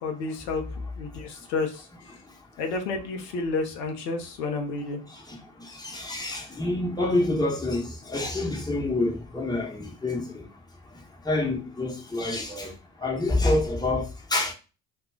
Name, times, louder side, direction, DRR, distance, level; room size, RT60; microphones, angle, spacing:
voice 1, 0.0-0.6 1.0-1.9 2.6-5.0, left 3 dB, 85° left, 0.6 m, -30 dB
voice 2, 5.7-10.3 11.2-12.7 13.0-14.5, left 2 dB, 10° left, 0.9 m, -27 dB
2.2 x 2.2 x 3.4 m
hypercardioid pair, 45°, 48 cm